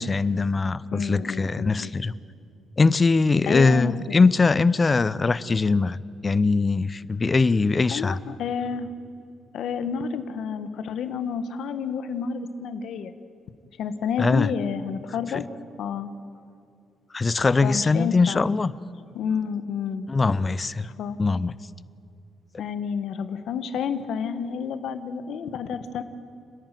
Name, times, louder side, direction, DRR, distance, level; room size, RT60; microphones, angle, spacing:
voice 1, 0.0-2.1 2.8-8.2 14.2-14.5 15.3-15.4 17.1-18.7 20.1-20.9 21.2-21.5, left 4 dB, 30° left, 18 dB, 0.6 m, -21 dB
voice 2, 0.9-1.9 3.4-4.2 7.9-8.9 9.5-13.1 13.8-15.5 15.8-16.1 17.6-18.4 19.1-20.1 21.0-21.2 22.6-26.0, left 6 dB, 75° left, 10 dB, 1.3 m, -30 dB
30.0 x 11.0 x 9.2 m, 2.4 s
cardioid pair, 90°, 0 cm